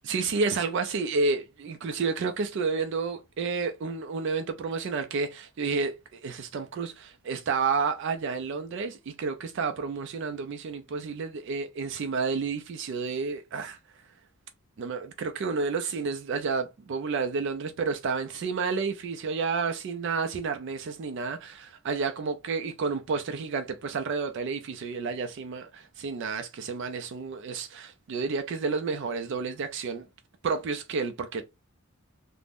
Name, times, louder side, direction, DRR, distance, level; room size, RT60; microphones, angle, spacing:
voice 1, 0.1-13.8 14.8-30.1 30.4-31.4, right 4 dB, 55° right, 0.3 m, -30 dB
2.5 x 2.0 x 3.4 m
head